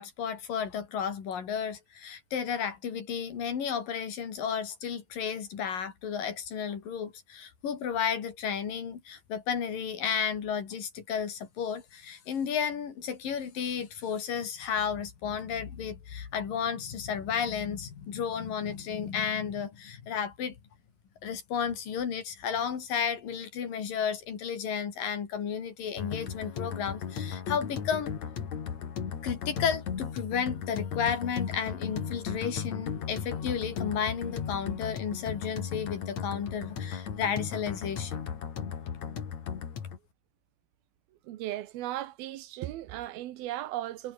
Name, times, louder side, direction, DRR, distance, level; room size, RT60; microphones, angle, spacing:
voice 1, 0.0-20.6 21.2-28.1 29.2-38.3, left 7 dB, 70° left, 4.8 m, -33 dB
sound 1, 26.0-40.0, left 7 dB, 50° left, 3.9 m, -36 dB
voice 2, 41.2-44.1, right 14 dB, 90° right, 3.1 m, -36 dB
omnidirectional pair, 4.2 m